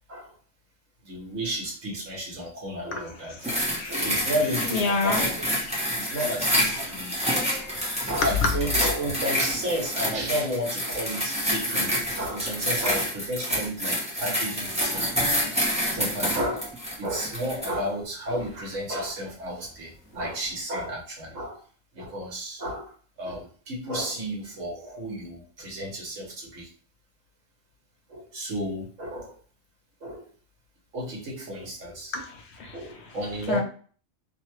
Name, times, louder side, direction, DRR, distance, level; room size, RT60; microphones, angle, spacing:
voice 1, 1.0-3.4 3.9-5.4 5.9-7.3 8.1-15.1 15.9-16.7 17.0-21.6 21.9-26.7 28.1-29.3 30.0-30.3 30.9-32.1 32.7-33.6, equal, 75° right, -2 dB, 1.4 m, -32 dB
sound 1, 3.4-17.8 18.4-18.6, equal, 5° right, 0.6 m, -28 dB
voice 2, 3.8-4.1 4.7-5.2 5.8-6.2 6.9-7.0 7.3-8.1 32.1-32.8 33.5-33.6, left 3 dB, 65° left, 3 dB, 0.8 m, -30 dB
3.1 x 2.2 x 2.9 m, 0.42 s
omnidirectional pair, 1.4 m